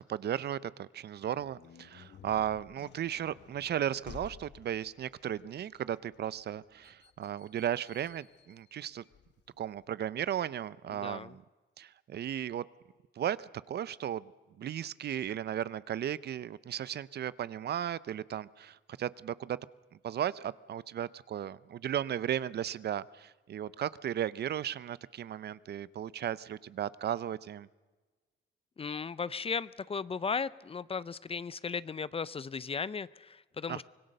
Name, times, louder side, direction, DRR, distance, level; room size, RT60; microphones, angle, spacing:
voice 1, 0.1-9.0 9.6-11.4 11.8-12.6 13.2-14.3 14.6-19.6 20.0-27.7 33.7-33.8, right 10 dB, 55° right, 18 dB, 0.6 m, -35 dB
sound 1, 1.1-9.8, left 9 dB, 60° left, 1.2 m, -55 dB
voice 2, 10.9-11.3 28.8-33.8, left 5 dB, 30° left, 19 dB, 0.6 m, -36 dB
25.0 x 19.0 x 6.6 m, 1.3 s
cardioid pair, 90°, 20 cm